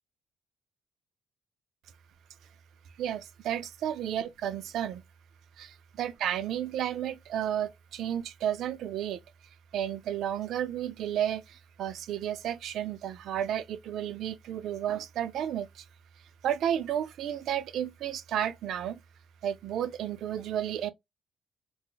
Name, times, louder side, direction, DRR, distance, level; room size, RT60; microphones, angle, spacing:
voice 1, 3.0-5.0 5.6-5.7 6.0-9.2 9.7-15.8 16.4-19.0 19.4-20.9, right 10 dB, 60° right, 0.4 m, -32 dB
3.9 x 2.0 x 2.3 m
cardioid pair, 160°, 0 cm